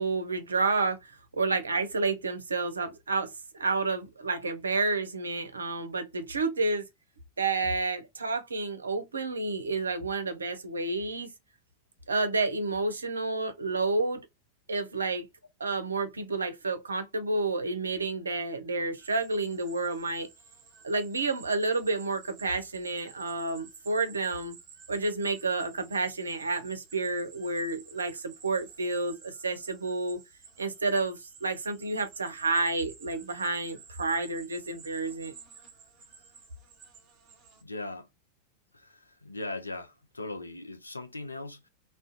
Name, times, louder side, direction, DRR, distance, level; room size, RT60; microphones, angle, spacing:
voice 1, 0.0-6.8 7.4-11.3 12.1-14.2 14.7-15.3 15.6-20.3 20.8-24.6 24.9-30.2 30.6-35.3, right 3 dB, 75° right, 0.4 m, -30 dB
sound 1, 19.0-37.6, right 6 dB, 35° right, 1.1 m, -53 dB
voice 2, 37.6-38.1 38.7-41.7, left 2 dB, 80° left, 0.4 m, -39 dB
2.4 x 2.1 x 2.5 m
figure-of-eight pair, 90°, 0 cm